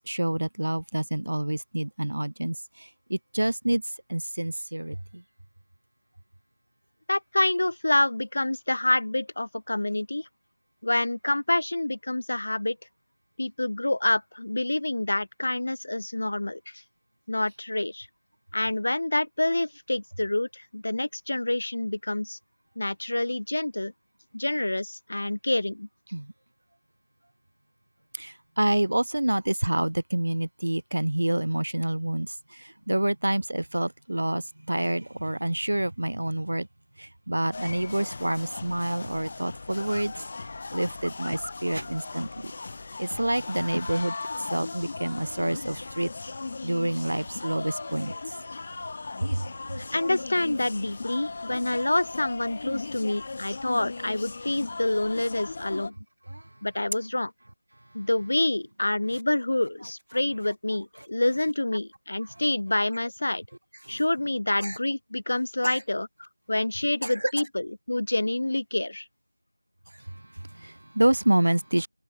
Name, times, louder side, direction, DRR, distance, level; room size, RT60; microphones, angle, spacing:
voice 1, 0.1-3.8 4.1-5.2 26.1-26.3 28.1-36.7 37.0-40.1 40.7-42.5 43.0-44.2 44.5-46.1 46.6-48.3 49.2-49.5 56.3-56.5 62.4-62.5 63.8-64.0 64.6-64.8 65.6-65.8 67.0-67.3 70.1-71.9, right 1 dB, 50° right, 1.8 m, -28 dB
voice 2, 7.1-10.3 10.8-12.8 13.4-16.8 17.3-18.1 18.5-22.4 22.8-23.9 24.3-25.9 49.8-55.9 56.6-57.3 57.9-63.4 63.9-69.0, left 1 dB, 45° left, 1.5 m, -27 dB
sound 1, 37.5-55.9, left 3 dB, 25° left, 1.4 m, -38 dB
figure-of-eight pair, 170°, 0 cm